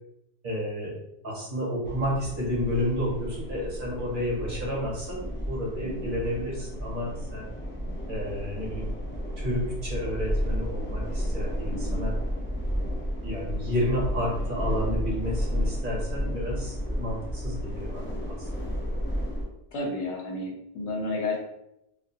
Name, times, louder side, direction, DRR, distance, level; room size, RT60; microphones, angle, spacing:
voice 1, 0.4-1.0 1.2-7.5 8.1-8.9 9.4-12.1 13.2-18.7, equal, 50° right, -4 dB, 0.9 m, -31 dB
sound 1, 1.8-19.4, equal, 20° left, 0.3 m, -32 dB
voice 2, 5.8-6.1 11.7-12.0 19.7-21.4, left 2 dB, 80° left, -1 dB, 0.9 m, -32 dB
2.3 x 2.3 x 2.7 m, 0.84 s
omnidirectional pair, 1.2 m